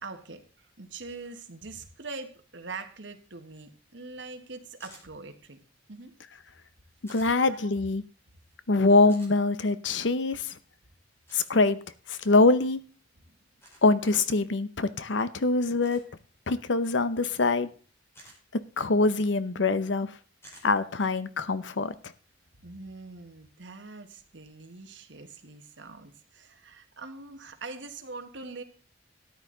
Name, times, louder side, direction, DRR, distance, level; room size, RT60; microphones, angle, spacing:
voice 1, 0.0-5.6 5.9-6.1 7.3-7.7 13.2-13.4 22.6-28.6, right 3 dB, 80° right, 7 dB, 1.5 m, -43 dB
sound 1, 4.8-5.1 7.1-7.3 9.1-9.3 11.3-11.5 13.6-13.8 15.8-16.1 18.1-18.4 20.4-20.7, right 1 dB, 15° left, 4.5 m, -51 dB
voice 2, 7.1-8.0 8.7-10.5 11.3-11.8 12.1-12.8 13.8-16.0 16.5-17.7 18.8-20.1 20.6-21.9, left 3 dB, 80° left, 14 dB, 0.8 m, -24 dB
13.0 x 9.7 x 3.9 m, 0.40 s
head